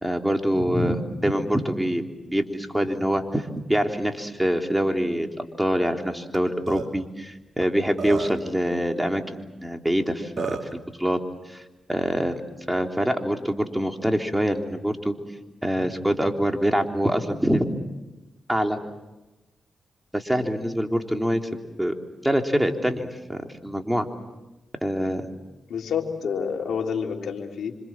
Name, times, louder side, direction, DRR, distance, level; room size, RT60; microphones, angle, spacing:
voice 1, 0.0-2.1 2.3-11.2 11.5-11.6 11.9-12.4 12.7-15.1 15.6-17.7 18.5-18.8 20.1-21.5 21.8-22.0 22.2-24.1 24.8-25.2, equal, 10° right, 3 dB, 3.6 m, -25 dB
Burping eructation, 6.3-6.4 6.7-6.9 7.6-7.7 8.0-8.5 9.9-10.0 10.4-10.7, right 6 dB, 65° right, 3.1 m, -31 dB
voice 2, 25.7-27.8, left 6 dB, 75° left, 1 dB, 3.6 m, -28 dB
27.5 x 26.0 x 7.6 m, 1.1 s
supercardioid pair, 40°, 0 cm